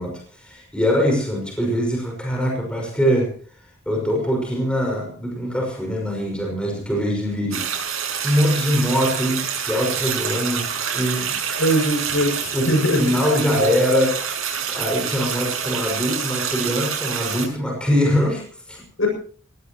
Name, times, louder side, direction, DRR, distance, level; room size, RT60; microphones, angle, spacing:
voice 1, 0.0-3.3 3.9-7.7 8.2-11.4 12.5-14.2 14.7-18.8, equal, 5° left, 0 dB, 5.8 m, -23 dB
sound 1, 7.5-17.5, right 7 dB, 90° right, 6.3 m, -27 dB
voice 2, 11.6-13.0 13.6-13.7 19.0-19.1, equal, 75° left, 3 dB, 7.3 m, -21 dB
22.0 x 17.5 x 3.1 m, 0.43 s
head